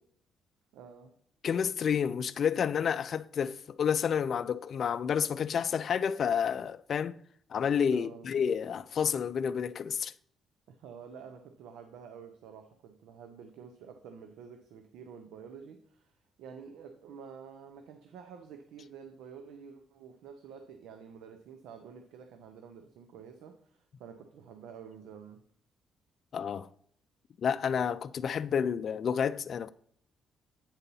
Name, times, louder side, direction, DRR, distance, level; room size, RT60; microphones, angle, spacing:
voice 1, 0.7-1.1 7.9-8.3 10.7-25.4, right 6 dB, 90° right, 0.7 m, -49 dB
voice 2, 1.4-7.1 7.5-10.1 26.3-26.7 27.4-29.7, left 7 dB, 55° left, 0.4 m, -30 dB
8.9 x 4.1 x 5.4 m
cardioid pair, 90°, 0 cm